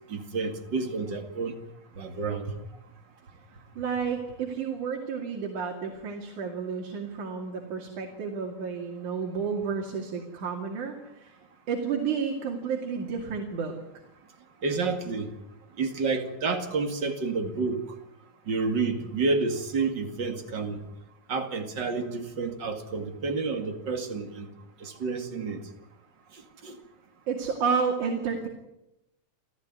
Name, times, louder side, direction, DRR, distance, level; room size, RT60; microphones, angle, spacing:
voice 1, 0.1-1.6 2.0-2.6 14.6-15.3 15.8-17.8 18.5-20.8 21.3-24.5 24.8-25.6 26.6-26.8, right 4 dB, 40° right, 5 dB, 2.7 m, -29 dB
voice 2, 3.8-11.0 11.2-11.4 11.7-13.7 27.3-28.5, right 6 dB, 75° right, 1 dB, 3.9 m, -31 dB
28.0 x 15.5 x 9.5 m, 0.88 s
omnidirectional pair, 3.5 m